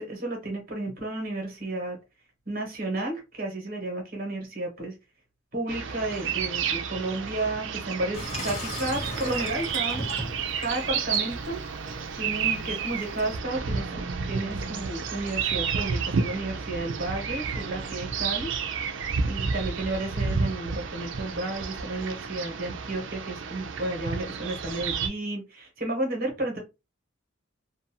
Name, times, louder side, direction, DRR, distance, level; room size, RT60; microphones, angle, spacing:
voice 1, 0.0-2.0 2.5-4.9 5.5-10.0 10.6-11.6 12.1-18.5 19.2-26.6, right 2 dB, 45° right, 1 dB, 1.1 m, -32 dB
sound 1, 5.7-25.1, right 5 dB, 65° right, 0.4 m, -31 dB
Water tap faucet / Sink (filling or washing), 8.1-13.3, equal, 30° left, 0.9 m, -38 dB
2.6 x 2.2 x 2.8 m, 0.25 s
head